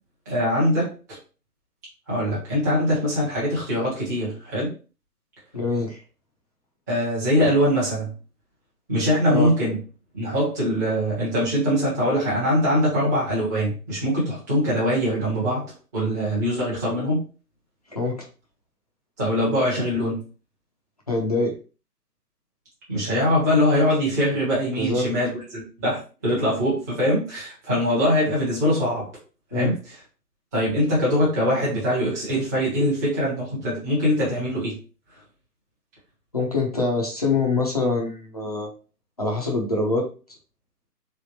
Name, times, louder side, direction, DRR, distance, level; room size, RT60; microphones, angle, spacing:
voice 1, 0.3-1.2 2.1-4.7 6.9-8.1 8.9-9.8 10.1-15.6 15.9-17.2 19.2-20.2 22.9-29.1 29.5-29.7 30.5-34.8, equal, 10° right, -8 dB, 1.0 m, -22 dB
voice 2, 5.5-6.0 9.3-9.5 17.9-18.3 21.1-21.5 24.8-25.0 29.5-29.7 36.3-38.7 39.2-40.1, left 3 dB, 25° left, -1 dB, 0.6 m, -24 dB
3.8 x 3.4 x 2.9 m, 0.35 s
figure-of-eight pair, 150°, 49 cm